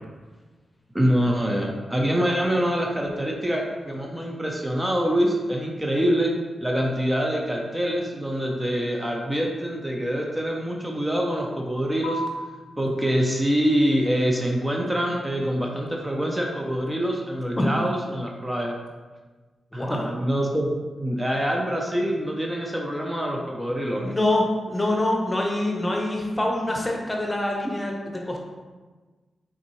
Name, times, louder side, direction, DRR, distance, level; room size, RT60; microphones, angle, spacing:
voice 1, 0.9-6.3 6.6-12.2 12.8-18.7 19.7-24.2 27.6-27.7, equal, 15° right, 0 dB, 0.7 m, -25 dB
sound 1, 12.0-19.0, left 1 dB, 90° left, 0.3 m, -42 dB
voice 2, 19.7-20.1 24.0-27.9 28.3-28.4, left 1 dB, 25° left, 0 dB, 0.9 m, -25 dB
3.9 x 3.6 x 3.1 m, 1.3 s
supercardioid pair, 40°, 0 cm